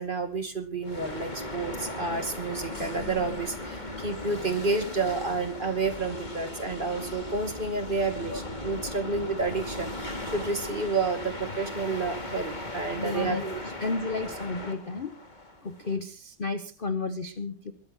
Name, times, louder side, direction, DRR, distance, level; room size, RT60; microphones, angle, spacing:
voice 1, 0.0-13.6, right 3 dB, 25° right, 7 dB, 2.1 m, -30 dB
sound 1, 0.8-16.0, left 1 dB, 20° left, 2.4 m, -38 dB
voice 2, 13.0-13.4 13.8-15.1 15.6-17.7, left 3 dB, 45° left, 11 dB, 0.7 m, -32 dB
21.0 x 14.0 x 4.3 m, 0.38 s
omnidirectional pair, 2.4 m